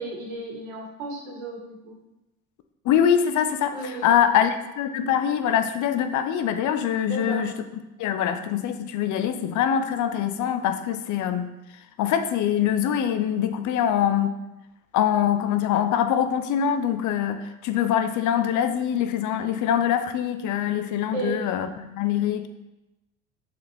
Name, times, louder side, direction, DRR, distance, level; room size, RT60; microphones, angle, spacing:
voice 1, 0.0-1.9 3.7-4.2 7.0-7.4 21.1-21.4, right 3 dB, 75° right, -1 dB, 1.9 m, -34 dB
voice 2, 2.8-7.5 8.0-11.5 12.0-14.4 14.9-22.5, left 9 dB, 50° left, 9 dB, 0.6 m, -24 dB
6.4 x 4.3 x 3.5 m, 0.98 s
supercardioid pair, 85°, 39 cm